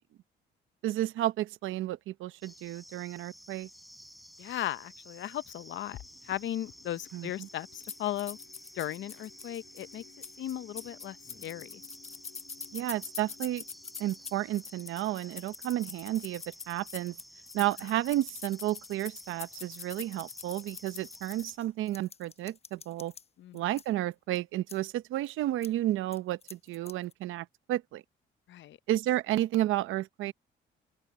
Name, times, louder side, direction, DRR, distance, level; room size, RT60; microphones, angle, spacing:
voice 1, 0.8-3.7 7.1-7.5 12.7-13.6 14.0-17.2 17.5-23.1 23.5-28.0 28.9-30.3, right 14 dB, 90° right, 0.9 m, -32 dB
sound 1, 2.4-21.6, equal, ahead, 5.5 m, -53 dB
voice 2, 4.4-6.0 6.2-8.4 8.7-10.0 10.4-11.2 11.4-11.8 23.4-23.6 28.5-28.8, left 12 dB, 70° left, 0.7 m, -36 dB
sound 2, 5.9-16.6, left 13 dB, 85° left, 3.9 m, -58 dB
sound 3, 7.8-23.2 23.6-23.9 24.3-24.4 24.7-24.8 25.2-25.3 25.6-25.7 26.1-27.1, left 5 dB, 30° left, 0.9 m, -44 dB
open air
cardioid pair, 90°, 20 cm